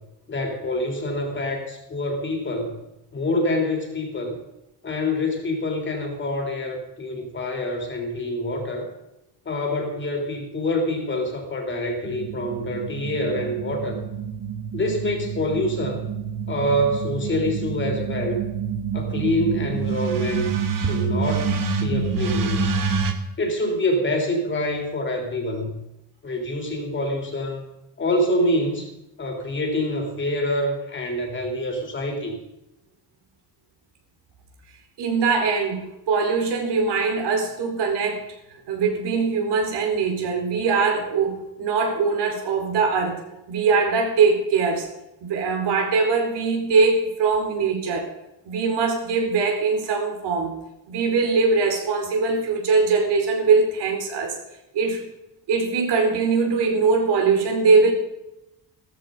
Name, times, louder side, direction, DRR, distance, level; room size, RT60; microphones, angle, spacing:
voice 1, 0.3-2.8 3.1-4.4 4.8-8.9 9.4-14.0 14.7-16.0 16.5-18.4 18.9-22.8 23.4-25.9 26.2-27.6 28.0-28.9 29.2-32.4, left 1 dB, 25° left, 3 dB, 3.3 m, -26 dB
sound 1, 12.0-23.1, right 5 dB, 50° right, 1.9 m, -27 dB
voice 2, 35.0-38.2 38.7-43.2 43.5-44.9 45.2-48.1 48.4-50.6 50.9-54.4 54.7-55.0 55.5-57.9, right 4 dB, 75° right, 3 dB, 4.8 m, -21 dB
15.5 x 14.0 x 5.2 m, 0.90 s
cardioid pair, 180°, 42 cm